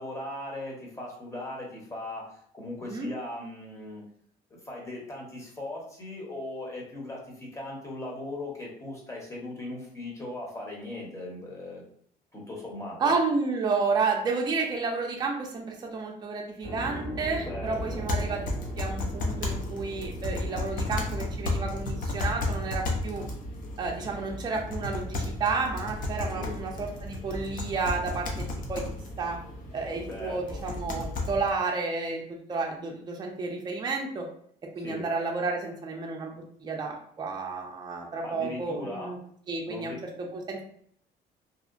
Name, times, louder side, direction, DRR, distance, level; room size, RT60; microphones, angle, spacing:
voice 1, 0.0-4.0 4.5-11.8 12.3-13.1 17.5-18.0 26.3-26.5 30.1-30.6 34.8-35.0 38.2-39.1 39.7-40.0, left 2 dB, 15° left, -2 dB, 0.9 m, -38 dB
voice 2, 13.0-18.4 18.8-23.2 23.8-28.8 29.2-29.4 29.7-34.3 34.8-39.2 39.5-40.6, right 4 dB, 25° right, 0 dB, 0.5 m, -31 dB
sound 1, 16.6-31.5, right 1 dB, 80° left, 1.4 m, -41 dB
sound 2, 17.6-31.5, left 2 dB, 55° left, 0.6 m, -34 dB
2.7 x 2.0 x 2.5 m, 0.63 s
cardioid pair, 110°, 17 cm